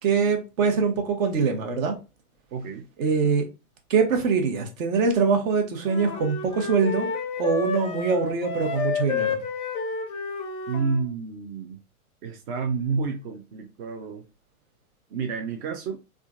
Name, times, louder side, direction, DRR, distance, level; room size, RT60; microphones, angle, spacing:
voice 1, 0.0-2.0 3.0-3.5 3.9-7.1 7.4-9.4, right 5 dB, 60° right, 1.1 m, -23 dB
voice 2, 2.5-2.9 10.7-11.8 12.2-14.2 15.1-16.0, right 5 dB, 40° right, 0.5 m, -29 dB
sound 1, 5.8-11.0, left 5 dB, 15° left, 0.4 m, -30 dB
3.6 x 2.4 x 2.4 m
hypercardioid pair, 110°, 44 cm